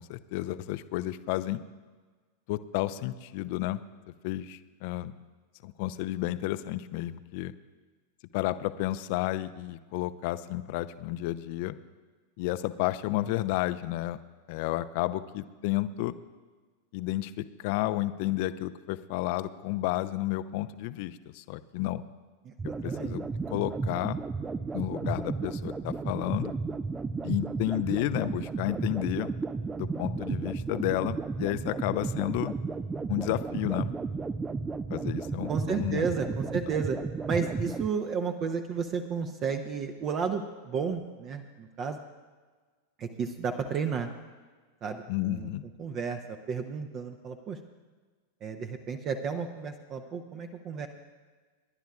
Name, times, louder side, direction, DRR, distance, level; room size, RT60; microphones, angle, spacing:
voice 1, 0.0-1.6 2.5-3.8 4.2-5.1 5.6-7.5 8.3-11.7 12.4-14.2 14.5-16.2 16.9-22.0 22.6-24.2 24.7-26.5 27.2-29.3 29.8-32.5 33.1-33.9 34.9-36.1 45.1-45.6, left 16 dB, 45° left, 14 dB, 0.5 m, -31 dB
sound 1, 22.6-37.9, right 4 dB, 15° right, 0.4 m, -33 dB
voice 2, 22.8-23.2 35.5-37.0 37.3-42.0 43.0-44.1 44.8-45.5 45.8-47.6 48.4-50.9, right 6 dB, 30° right, 6 dB, 0.8 m, -32 dB
29.0 x 11.5 x 2.4 m, 1.4 s
figure-of-eight pair, 90°, 0 cm